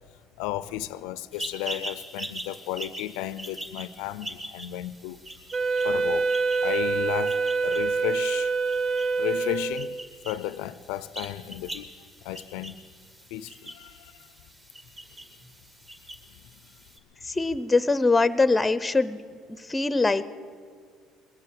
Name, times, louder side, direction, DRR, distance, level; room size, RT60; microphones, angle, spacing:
voice 1, 0.4-5.2 5.8-6.3 6.6-8.5 9.2-10.0 10.2-11.9 12.2-12.8 13.3-14.1, left 14 dB, 90° left, 0.4 m, -33 dB
sound 1, 1.3-17.0, right 1 dB, 30° right, 2.4 m, -42 dB
Wind instrument woodwind instrument, 5.5-10.1, right 4 dB, 45° right, 0.5 m, -26 dB
voice 2, 17.3-19.2 19.7-20.2, left 3 dB, 15° left, 0.7 m, -22 dB
21.5 x 7.7 x 7.6 m
supercardioid pair, 95°, 0 cm